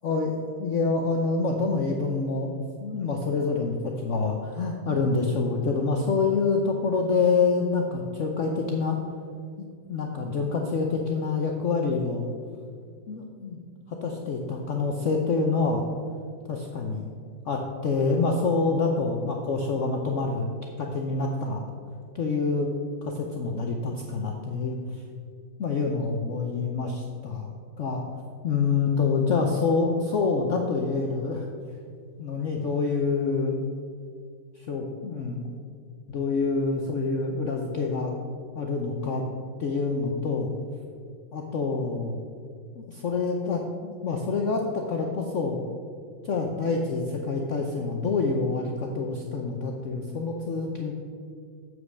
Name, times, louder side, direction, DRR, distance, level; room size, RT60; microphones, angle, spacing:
voice 1, 0.0-9.0 9.6-12.3 13.1-13.6 13.9-15.9 16.5-17.1 17.5-20.5 20.8-21.6 22.1-22.7 23.0-24.8 25.6-27.5 27.8-28.0 28.4-31.5 32.2-33.5 34.6-35.5 36.1-38.2 38.5-39.2 39.6-40.5 41.3-42.2 42.8-45.6 46.2-50.9, left 4 dB, 60° left, 1 dB, 0.8 m, -27 dB
7.6 x 6.3 x 6.3 m, 2.2 s
omnidirectional pair, 2.0 m